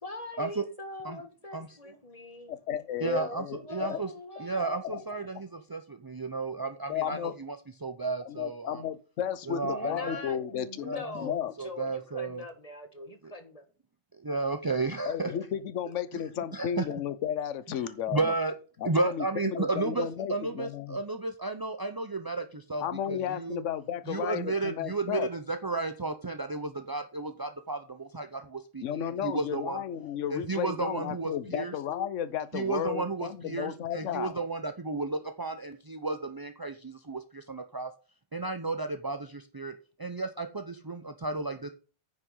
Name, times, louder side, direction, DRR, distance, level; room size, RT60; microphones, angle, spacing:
voice 1, 0.0-2.6 3.0-5.2 9.6-13.7, left 2 dB, 25° left, 1.5 m, -43 dB
voice 2, 2.5-4.0 4.9-5.0 6.9-7.4 8.3-11.5 15.1-18.3 18.8-21.0 22.8-25.3 28.8-34.4, left 9 dB, 60° left, 1.1 m, -33 dB
voice 3, 3.0-4.1 4.4-8.8 9.5-10.2 10.8-12.4 14.1-15.3 16.5-16.9 18.1-18.5 18.8-23.6 24.1-29.8 30.3-31.7 32.5-37.9 38.3-39.7 40.0-41.7, right 3 dB, 30° right, 0.4 m, -33 dB
9.8 x 6.4 x 5.5 m
omnidirectional pair, 1.5 m